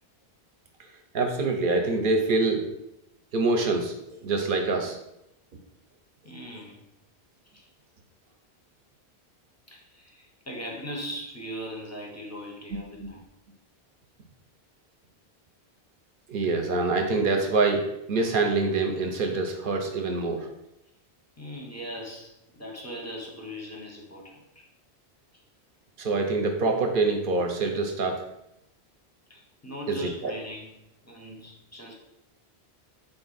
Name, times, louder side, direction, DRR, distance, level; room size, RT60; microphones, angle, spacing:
voice 1, 1.1-2.6 3.3-3.9 4.2-5.0 13.0-13.1 16.3-20.5 26.0-28.2 29.9-30.3, right 3 dB, 60° right, 3 dB, 0.7 m, -25 dB
voice 2, 6.2-6.8 7.5-7.6 9.7-13.2 21.4-24.7 29.3-30.7 31.0-31.9, equal, 20° left, -1 dB, 0.5 m, -39 dB
3.9 x 2.5 x 3.9 m, 0.85 s
omnidirectional pair, 1.1 m